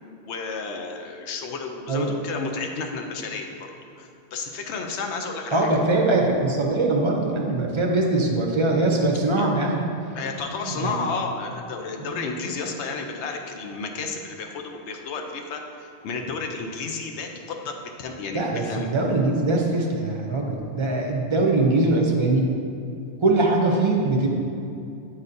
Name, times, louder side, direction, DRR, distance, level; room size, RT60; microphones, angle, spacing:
voice 1, 0.3-3.7 4.0-5.7 9.4-9.6 10.1-18.9, left 4 dB, 75° left, 3 dB, 0.9 m, -32 dB
voice 2, 5.5-9.8 10.8-11.0 12.1-12.2 18.3-22.5 23.2-24.3, right 2 dB, 35° right, 0 dB, 0.5 m, -22 dB
8.6 x 4.1 x 2.6 m, 2.6 s
omnidirectional pair, 1.2 m